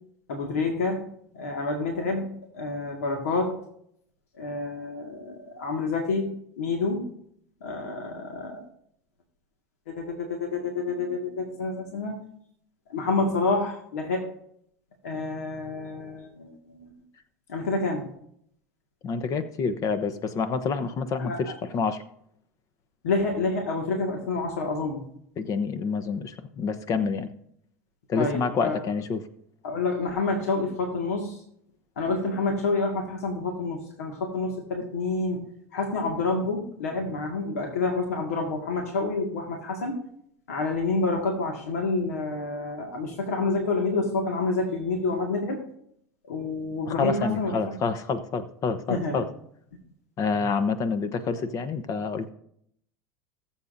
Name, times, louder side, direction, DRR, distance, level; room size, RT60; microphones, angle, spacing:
voice 1, 0.3-1.0 1.3-2.3 2.5-3.6 4.4-6.3 6.6-7.0 7.6-8.6 9.9-12.1 12.9-14.3 15.0-16.9 17.5-18.1 21.2-21.6 23.0-25.0 28.2-28.9 29.6-31.4 32.0-35.4 35.7-40.0 40.5-45.6 46.2-47.8 48.9-49.3 50.3-50.5 51.4-51.5, left 3 dB, 80° left, 2 dB, 1.8 m, -28 dB
voice 2, 19.0-22.0 25.4-27.3 28.1-29.3 46.9-49.3 50.2-52.3, left 5 dB, 45° left, 12 dB, 0.9 m, -28 dB
19.5 x 7.3 x 2.6 m, 0.70 s
hypercardioid pair, 85°, 8 cm